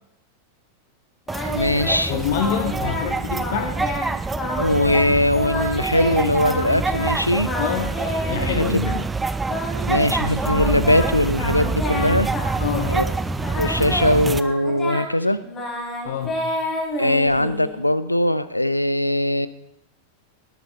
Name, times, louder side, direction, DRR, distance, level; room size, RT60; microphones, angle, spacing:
Singing, 1.3-3.1 3.4-4.1 4.3-5.1 5.3-7.1 7.4-8.9 9.5-13.1 13.4-17.8, left 1 dB, 25° left, 4.6 m, -29 dB
sound 1, 1.3-14.4, right 3 dB, 10° right, 0.6 m, -26 dB
voice 1, 1.5-2.1 4.6-7.5 8.4-8.7 9.9-12.3 12.9-13.1 13.6-15.4 17.0-19.5, left 1 dB, 85° left, 16 dB, 0.6 m, -20 dB
voice 2, 2.1-4.0 7.6-8.0 8.3-9.0 12.6-13.0 16.0-16.4, left 7 dB, 50° left, 8 dB, 1.4 m, -26 dB
19.0 x 9.1 x 4.2 m, 0.76 s
figure-of-eight pair, 90°, 0 cm